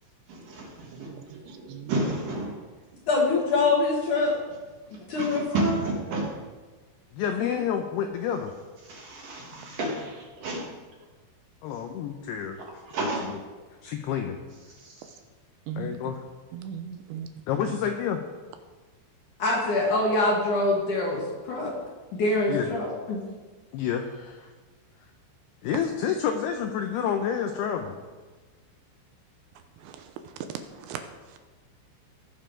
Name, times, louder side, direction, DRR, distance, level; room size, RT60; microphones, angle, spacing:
voice 1, 0.3-2.6 4.9-6.4 8.3-8.4 8.8-10.8 12.6-13.4 14.7-15.2, right 2 dB, 60° right, -1 dB, 2.5 m, -32 dB
voice 2, 0.9-1.9 15.7-16.0 16.5-17.3 17.6-17.8 29.8-31.4, right 8 dB, 80° right, 7 dB, 2.9 m, -39 dB
voice 3, 3.1-4.3 5.1-5.8 7.4-7.6 19.4-21.2 21.5-21.7 22.1-23.2, left 2 dB, 55° left, -2 dB, 2.4 m, -24 dB
voice 4, 7.1-8.5 11.6-12.6 13.8-14.4 15.8-16.2 17.5-18.2 22.5-22.7 23.7-24.5 25.6-28.0, left 8 dB, 85° left, 5 dB, 2.3 m, -29 dB
18.0 x 6.8 x 5.0 m, 1.3 s
omnidirectional pair, 5.5 m